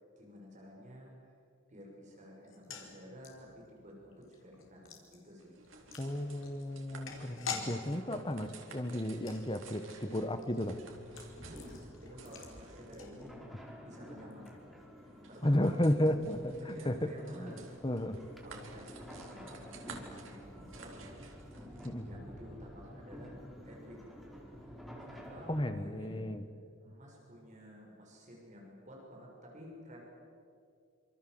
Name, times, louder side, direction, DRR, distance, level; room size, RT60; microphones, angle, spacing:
voice 1, 0.2-1.1 1.7-5.6 11.4-14.5 15.0-15.8 16.6-17.7 18.4-21.1 22.0-24.1 24.5-24.7 25.0-26.3 26.8-30.0, equal, 40° right, -1 dB, 6.5 m, -52 dB
sound 1, 2.4-13.7 13.9-14.0 14.3-14.5, left 5 dB, 80° left, 4.3 m, -48 dB
sound 2, 5.4-21.9, right 4 dB, 85° right, 3.9 m, -54 dB
voice 2, 6.0-10.8 15.4-17.5 17.8-18.2 21.8-22.1 25.5-26.4, left 1 dB, 25° left, 10 dB, 1.3 m, -33 dB
sound 3, 10.8-25.7, equal, ahead, 4.3 m, -50 dB
27.0 x 26.0 x 7.9 m, 2.3 s
head